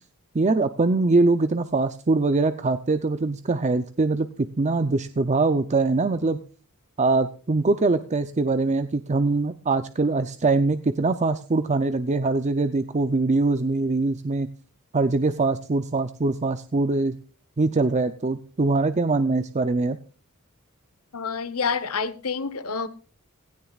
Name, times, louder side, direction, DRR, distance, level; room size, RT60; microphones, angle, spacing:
voice 1, 0.3-6.4 7.0-14.5 14.9-17.2 17.6-20.0, right 3 dB, 30° right, 0.6 m, -23 dB
voice 2, 21.1-22.9, left 5 dB, 75° left, 1.1 m, -28 dB
17.0 x 16.0 x 2.4 m
head